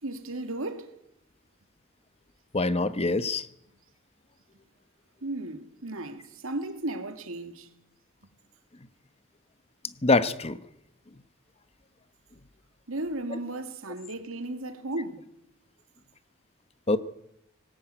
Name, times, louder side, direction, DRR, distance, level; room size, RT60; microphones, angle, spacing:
voice 1, 0.0-0.9 5.2-7.7 12.9-15.3, right 2 dB, 75° right, 2.3 m, -35 dB
voice 2, 2.5-3.5 10.0-10.6 13.3-13.4 16.9-17.0, left 3 dB, 30° left, 1.0 m, -24 dB
22.0 x 19.0 x 9.1 m
head